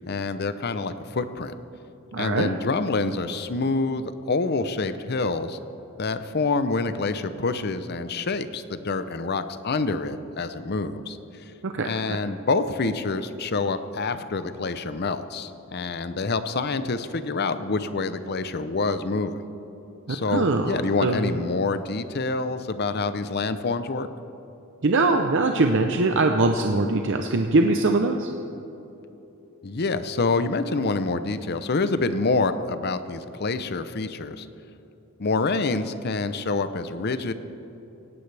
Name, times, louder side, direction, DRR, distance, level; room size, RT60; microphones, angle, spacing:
voice 1, 0.1-1.5 2.2-5.6 6.0-11.2 11.8-19.4 20.1-24.1 29.6-34.5 35.2-37.3, left 3 dB, 50° left, 11 dB, 0.7 m, -27 dB
voice 2, 2.1-2.5 11.6-12.2 20.1-21.2 24.8-28.3, right 2 dB, 60° right, 4 dB, 0.7 m, -22 dB
17.5 x 16.5 x 3.4 m, 2.9 s
head